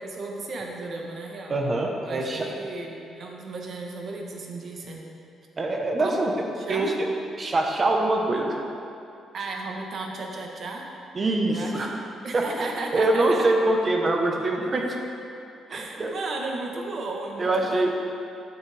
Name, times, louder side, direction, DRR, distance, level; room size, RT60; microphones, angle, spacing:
voice 1, 0.0-1.6 2.0-5.1 6.0-6.2 6.6-6.9 9.3-10.9 11.4-11.9 12.2-13.5 15.7-17.9, right 3 dB, 55° right, 0 dB, 1.3 m, -34 dB
voice 2, 1.5-2.5 5.6-6.3 6.7-6.9 7.4-8.6 11.1-12.0 12.3-14.8 15.7-16.1 17.4-17.9, right 2 dB, 35° right, 1 dB, 1.2 m, -24 dB
10.5 x 7.5 x 3.5 m, 2.6 s
cardioid pair, 90°, 0 cm